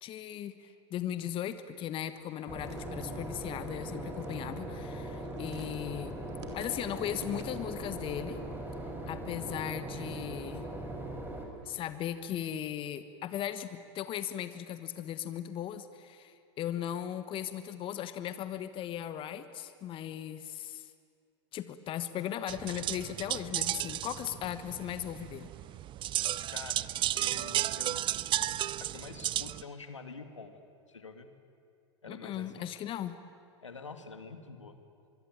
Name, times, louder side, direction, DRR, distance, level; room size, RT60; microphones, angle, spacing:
voice 1, 0.0-6.1 6.5-8.4 9.1-10.7 11.6-20.9 21.5-25.5 32.1-33.2, left 10 dB, 35° left, 11 dB, 1.3 m, -37 dB
sound 1, 2.0-7.8, right 5 dB, 70° right, 4.0 m, -56 dB
Boat Water vehicle / Engine, 2.5-11.4, right 1 dB, 15° right, 5.9 m, -40 dB
sound 2, 22.5-29.6, right 13 dB, 35° right, 0.7 m, -33 dB
voice 2, 26.5-26.9 27.2-28.0 28.5-30.6 30.9-31.3 32.0-32.7 33.6-34.8, left 4 dB, 90° left, 8 dB, 2.2 m, -47 dB
24.0 x 23.5 x 9.2 m, 2.3 s
hypercardioid pair, 95°, 15 cm